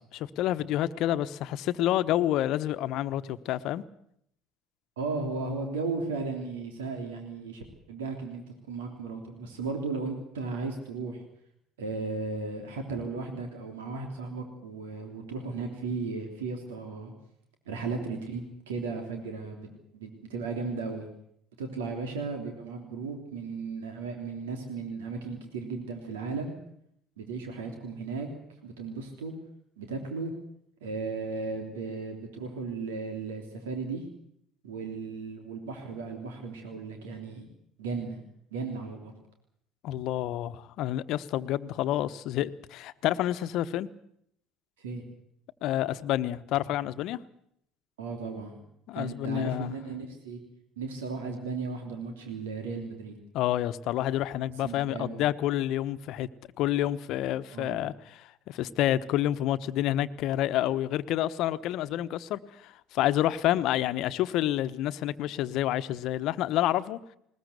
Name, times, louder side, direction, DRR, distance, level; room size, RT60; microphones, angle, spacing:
voice 1, 0.1-3.8 39.8-43.9 45.6-47.2 48.9-49.7 53.3-56.3 56.6-67.0, left 13 dB, 60° left, 1.0 m, -28 dB
voice 2, 5.0-11.2 11.8-17.1 17.7-19.7 19.9-21.1 21.6-26.5 27.2-28.3 28.6-29.3 29.8-30.3 30.8-34.0 34.6-37.5 37.8-38.2 38.5-39.1 44.8-45.0 48.0-48.6 48.9-50.4 50.8-53.2 54.6-55.2 57.5-57.8, right 4 dB, 80° right, 3.3 m, -35 dB
20.5 x 20.0 x 8.2 m
hypercardioid pair, 65°, 0 cm